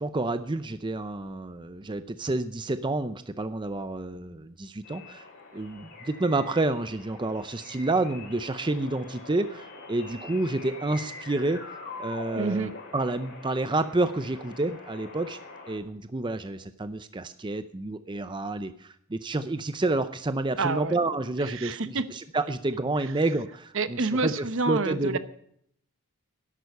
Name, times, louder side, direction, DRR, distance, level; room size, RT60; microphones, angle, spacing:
voice 1, 0.0-5.3 5.5-11.6 12.0-15.4 15.7-25.2, right 2 dB, 20° right, 11 dB, 0.5 m, -29 dB
sound 1, 4.8-15.8, left 3 dB, 50° left, 5.5 m, -44 dB
voice 2, 12.3-12.7 20.6-20.9 21.5-22.0 23.7-25.2, right 3 dB, 60° right, 12 dB, 0.9 m, -28 dB
13.0 x 11.0 x 5.4 m, 0.68 s
head